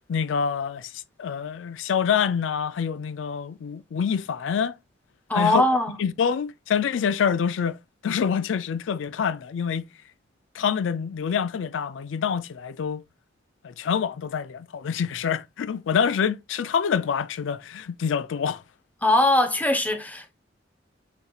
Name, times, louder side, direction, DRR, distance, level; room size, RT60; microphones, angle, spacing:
voice 1, 0.1-4.7 5.3-5.6 6.0-7.8 8.0-9.9 10.5-13.0 13.6-18.6, left 7 dB, 85° left, 0.4 m, -26 dB
voice 2, 5.3-6.0 19.0-20.3, left 1 dB, 10° left, 0.7 m, -21 dB
5.2 x 4.1 x 2.3 m
head